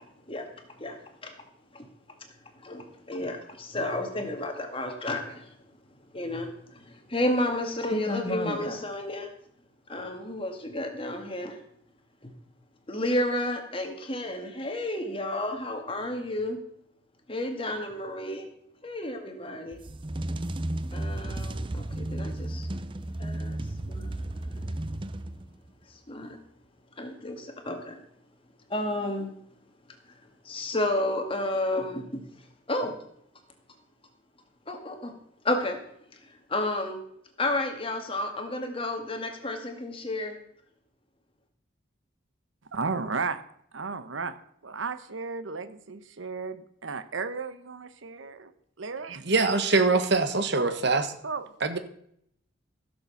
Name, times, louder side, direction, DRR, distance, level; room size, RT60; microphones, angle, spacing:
voice 1, 0.0-1.3 1.7-1.9 2.6-5.5 6.1-9.3 9.9-11.6 12.2-12.3 12.9-16.6 17.3-18.5 18.8-19.8 20.9-22.7 23.2-23.6 23.9-24.8 25.9-26.4 27.0-28.0 28.7-29.3 30.1-30.2 30.4-32.2 32.7-32.9 34.7-35.1 35.4-35.8 36.2-37.0 37.4-40.4, left 1 dB, 25° left, 5 dB, 1.9 m, -31 dB
sound 1, 19.7-25.7, right 1 dB, 25° right, 0.6 m, -33 dB
voice 2, 42.7-43.4 43.7-44.4 44.6-48.5 48.8-49.2 50.6-50.8 51.2-51.5, right 4 dB, 75° right, 12 dB, 0.9 m, -34 dB
voice 3, 49.3-51.1 51.6-51.8, right 3 dB, 55° right, 9 dB, 1.3 m, -23 dB
15.5 x 6.8 x 7.1 m, 0.70 s
head